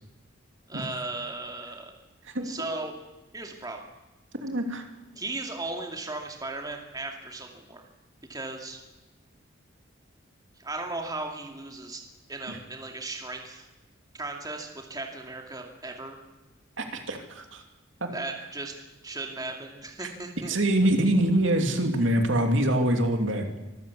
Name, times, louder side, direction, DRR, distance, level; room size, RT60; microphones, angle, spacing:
voice 1, 0.7-2.0 2.4-3.0 3.3-3.9 5.2-7.8 8.3-8.8 10.6-12.0 12.3-13.7 14.1-16.2 18.1-18.7 19.0-20.6, right 2 dB, 20° right, 2 dB, 2.4 m, -36 dB
voice 2, 2.2-2.7 4.4-4.9 12.5-12.6 16.8-17.6 18.0-18.1 20.0-20.1 20.5-23.5, right 1 dB, 70° right, 5 dB, 2.8 m, -25 dB
25.0 x 14.0 x 8.4 m, 1.1 s
head